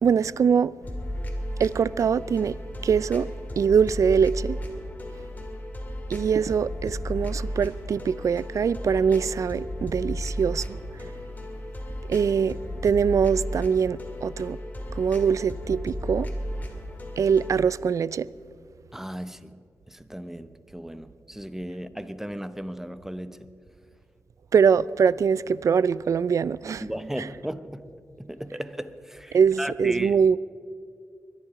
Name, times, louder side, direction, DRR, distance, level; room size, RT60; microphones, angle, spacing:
voice 1, 0.0-0.7 1.6-2.6 2.8-3.3 3.6-4.6 6.1-10.8 12.1-12.6 12.8-14.6 14.9-16.3 17.2-18.3 24.5-26.8 29.3-30.4, right 6 dB, 70° right, 0.3 m, -23 dB
sound 1, 0.8-17.7, equal, 30° left, 2.5 m, -34 dB
voice 2, 18.9-19.6 19.9-23.4 26.8-27.9 28.2-30.2, equal, 5° right, 0.7 m, -35 dB
22.5 x 10.5 x 4.8 m
cardioid pair, 70°, 6 cm